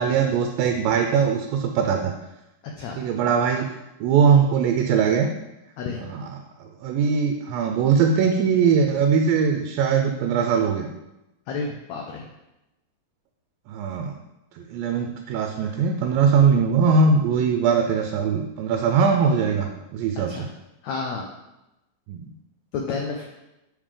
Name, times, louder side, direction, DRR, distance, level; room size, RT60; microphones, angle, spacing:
voice 1, 0.0-2.1 3.0-3.7 4.0-5.3 6.0-10.9 13.7-14.1 14.6-20.5 22.1-22.3, right 6 dB, 90° right, 4 dB, 2.4 m, -21 dB
voice 2, 11.5-12.2 20.3-20.5 20.8-21.2 22.7-23.2, left 4 dB, 85° left, 1 dB, 1.5 m, -30 dB
7.4 x 4.9 x 3.7 m, 0.95 s
omnidirectional pair, 4.0 m